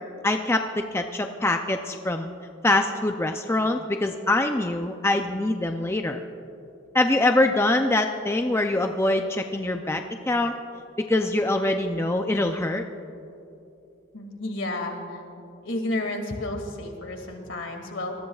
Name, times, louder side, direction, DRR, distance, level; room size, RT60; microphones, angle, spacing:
voice 1, 0.2-2.3 2.6-6.2 6.9-10.5 11.0-12.8, left 2 dB, 15° left, 5 dB, 0.5 m, -24 dB
voice 2, 14.1-15.2 15.6-18.1, left 1 dB, 70° left, 3 dB, 2.3 m, -31 dB
26.5 x 19.5 x 2.4 m, 2.8 s
head